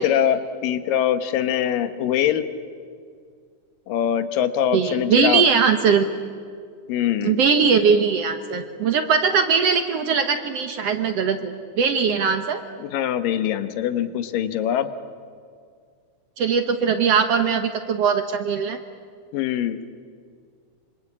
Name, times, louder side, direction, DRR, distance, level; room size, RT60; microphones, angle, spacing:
voice 1, 0.0-2.5 3.9-5.4 6.9-7.4 12.8-14.9 19.3-19.8, left 10 dB, 85° left, 11 dB, 2.8 m, -23 dB
voice 2, 4.7-6.1 7.2-12.6 16.4-18.8, right 6 dB, 65° right, 7 dB, 1.7 m, -20 dB
26.0 x 25.5 x 8.5 m, 2.1 s
omnidirectional pair, 3.9 m